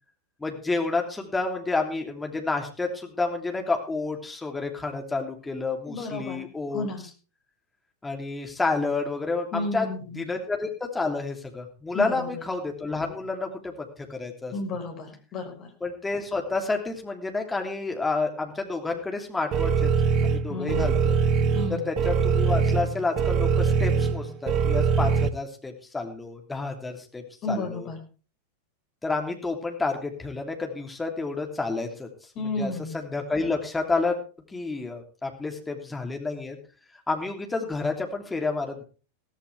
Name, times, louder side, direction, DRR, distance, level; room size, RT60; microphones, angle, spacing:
voice 1, 0.4-6.9 8.0-9.9 10.2-14.5 15.8-19.9 20.2-21.2 21.9-27.9 29.0-32.1 32.4-34.1 34.5-36.6 37.1-38.8, left 3 dB, 10° left, 2 dB, 3.1 m, -30 dB
voice 2, 5.9-6.5 6.7-7.1 9.5-10.2 11.9-12.4 14.5-15.7 20.5-21.0 21.5-21.9 27.4-28.0 32.3-33.0, left 2 dB, 35° left, 4 dB, 4.8 m, -32 dB
sound 1, 19.5-25.3, right 6 dB, 35° right, 1.1 m, -23 dB
16.0 x 15.0 x 3.5 m, 0.37 s
figure-of-eight pair, 90°, 0 cm